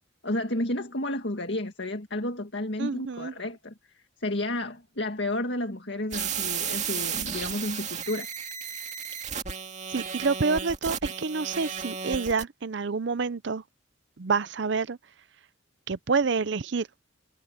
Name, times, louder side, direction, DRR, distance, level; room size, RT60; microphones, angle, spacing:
voice 1, 0.2-8.5, left 1 dB, 60° left, 2.0 m, -32 dB
voice 2, 2.8-3.3 9.9-13.6 14.2-15.0 15.9-16.9, right 4 dB, 60° right, 0.6 m, -28 dB
sound 1, 6.1-12.4, right 7 dB, 35° right, 2.2 m, -33 dB
head